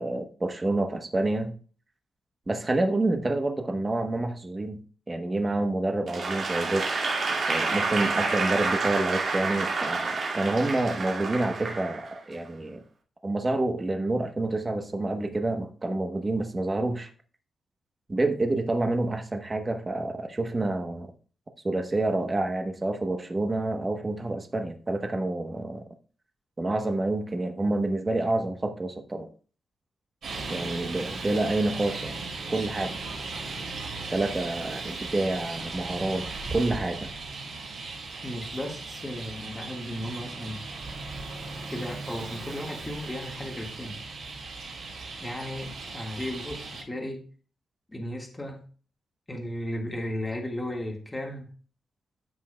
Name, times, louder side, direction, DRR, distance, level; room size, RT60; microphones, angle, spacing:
voice 1, 0.0-1.5 2.5-4.8 5.1-6.9 7.3-12.8 13.2-17.1 18.1-21.1 21.6-25.8 26.6-29.3 30.5-32.2 32.5-33.0 34.1-37.1, right 2 dB, 20° right, 6 dB, 0.9 m, -28 dB
Applause / Crowd, 6.1-12.3, right 4 dB, 45° right, 2.3 m, -29 dB
Traffic noise roadway noise, 30.2-46.8, right 3 dB, 70° right, 4.1 m, -37 dB
voice 2, 38.2-40.6 41.7-44.0 45.2-47.2 47.9-48.6 49.3-51.5, left 1 dB, 10° left, 1 dB, 1.7 m, -35 dB
13.5 x 5.9 x 2.2 m, 0.39 s
wide cardioid pair, 165°, 0 cm